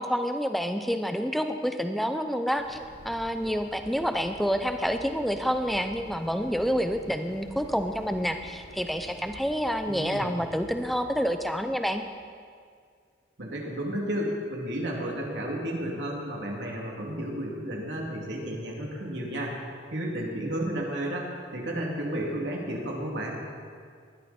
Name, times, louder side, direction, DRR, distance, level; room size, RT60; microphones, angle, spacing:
voice 1, 0.0-12.0, equal, ahead, 7 dB, 0.6 m, -28 dB
sound 1, 2.6-12.1, left 1 dB, 65° left, 1.6 m, -49 dB
voice 2, 9.9-10.3 13.4-19.5 19.9-23.4, right 1 dB, 75° right, -2 dB, 3.0 m, -32 dB
19.5 x 12.5 x 4.4 m, 2.1 s
head